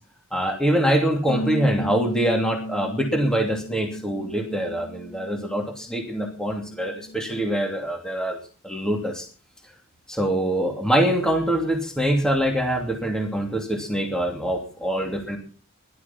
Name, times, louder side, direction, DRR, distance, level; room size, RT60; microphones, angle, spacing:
voice 1, 0.3-8.4 8.6-9.3 10.1-15.4, right 1 dB, 5° left, 2 dB, 2.8 m, -24 dB
sound 1, 1.3-5.8 6.1-7.5, equal, 85° left, 1.6 m, -35 dB
16.0 x 12.0 x 5.9 m, 0.40 s
head